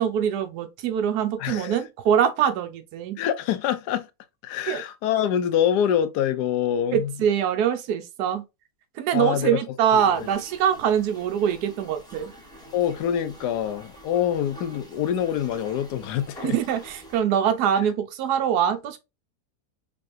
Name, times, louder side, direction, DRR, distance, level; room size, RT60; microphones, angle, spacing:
voice 1, 0.0-3.2 4.7-4.8 6.9-8.4 8.9-12.3 16.4-19.0, right 9 dB, 80° right, 1.2 m, -23 dB
voice 2, 1.4-1.8 3.2-4.1 4.4-7.1 9.1-9.6 9.9-10.2 12.7-16.6 17.8-17.9, left 9 dB, 85° left, 1.2 m, -25 dB
sound 1, 10.1-17.2, equal, 5° left, 0.9 m, -46 dB
3.7 x 3.4 x 2.5 m
omnidirectional pair, 1.7 m